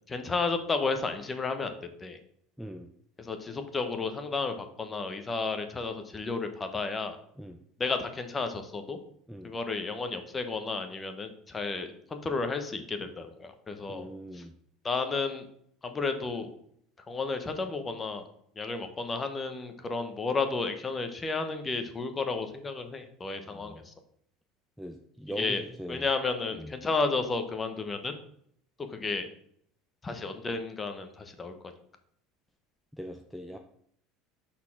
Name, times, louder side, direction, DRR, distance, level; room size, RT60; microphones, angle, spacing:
voice 1, 0.1-1.7 2.0-2.2 3.2-7.2 7.8-9.0 9.4-14.1 14.3-14.4 14.8-15.4 15.8-16.5 17.1-18.2 18.6-23.9 25.4-25.6 25.9-28.1 28.9-29.3 30.0-31.5, left 4 dB, 20° left, 7 dB, 0.9 m, -32 dB
voice 2, 2.6-2.9 7.4-7.6 9.3-9.5 13.9-14.5 23.5-23.8 24.8-26.1 26.5-26.7 32.9-33.6, equal, ahead, 4 dB, 0.5 m, -41 dB
5.5 x 4.2 x 5.9 m, 0.67 s
supercardioid pair, 130°, 0 cm